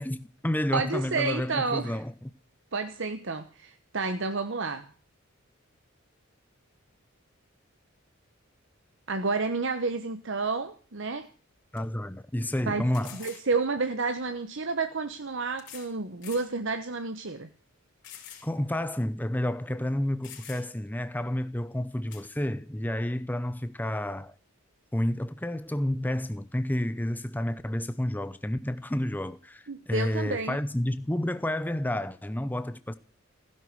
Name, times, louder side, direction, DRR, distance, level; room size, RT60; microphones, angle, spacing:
voice 1, 0.0-2.3 11.7-13.2 18.4-24.3 24.9-33.0, left 1 dB, 10° left, 0.7 m, -30 dB
voice 2, 0.7-2.0 2.7-4.9 9.1-11.3 12.7-12.9 13.1-17.5 29.7-30.6, right 4 dB, 60° right, 1.1 m, -30 dB
sound 1, 11.2-11.3 11.8-11.9 12.9-13.5 14.6-14.7 15.6-15.9 16.2-16.5 17.0-17.1 18.0-18.5 18.8-18.9 19.8-19.9 20.2-20.9 22.1-22.3, left 10 dB, 55° left, 4.5 m, -46 dB
16.0 x 11.0 x 8.0 m
head